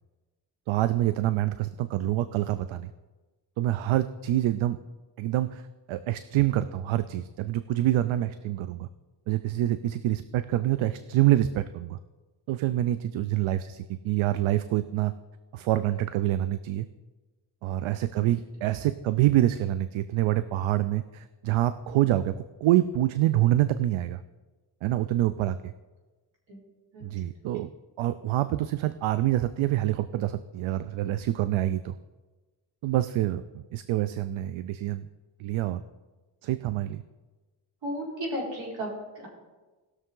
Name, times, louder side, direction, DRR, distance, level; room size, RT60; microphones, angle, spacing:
voice 1, 0.7-2.9 3.6-4.8 5.2-5.6 5.9-8.9 9.3-12.0 12.5-15.1 15.5-16.9 17.6-24.2 24.8-25.7 27.0-27.7 28.0-32.0 32.8-35.1 35.4-35.8 36.4-37.0, right 14 dB, 85° right, 13 dB, 0.6 m, -26 dB
voice 2, 37.8-39.3, equal, 70° right, -4 dB, 4.4 m, -34 dB
19.0 x 6.7 x 3.8 m, 1.2 s
cardioid pair, 145°, 46 cm